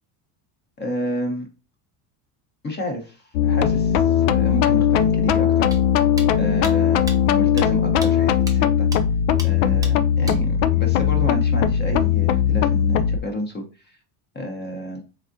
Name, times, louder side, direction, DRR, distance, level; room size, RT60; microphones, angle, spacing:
voice 1, 0.8-1.5 2.6-5.7 6.4-8.9 9.4-14.0 14.3-15.0, equal, 20° left, 2 dB, 0.9 m, -30 dB
sound 1, 3.3-13.2, left 9 dB, 70° left, 0.5 m, -19 dB
sound 2, 5.7-5.8 6.2-6.3 6.6-6.7 7.1-7.2 7.6-7.7 8.0-8.1 8.5-8.6 8.9-9.0 9.4-9.5 9.8-9.9 10.3-10.4, right 3 dB, 10° right, 0.4 m, -34 dB
4.0 x 3.6 x 2.6 m, 0.32 s
cardioid pair, 135°, 50 cm